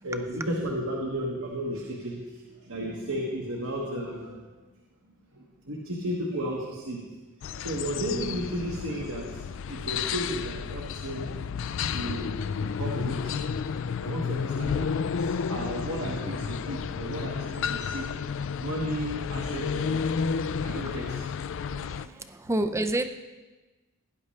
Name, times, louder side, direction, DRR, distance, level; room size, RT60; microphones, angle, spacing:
voice 1, 0.0-4.5 5.3-7.1 7.5-11.3 11.8-13.4 14.0-21.3 21.8-22.3, equal, 80° right, -3 dB, 1.6 m, -34 dB
sound 1, 7.4-22.1, left 6 dB, 60° left, 0.4 m, -31 dB
voice 2, 21.7-23.1, right 1 dB, 15° right, 9 dB, 0.5 m, -29 dB
17.0 x 10.0 x 3.3 m, 1.2 s
head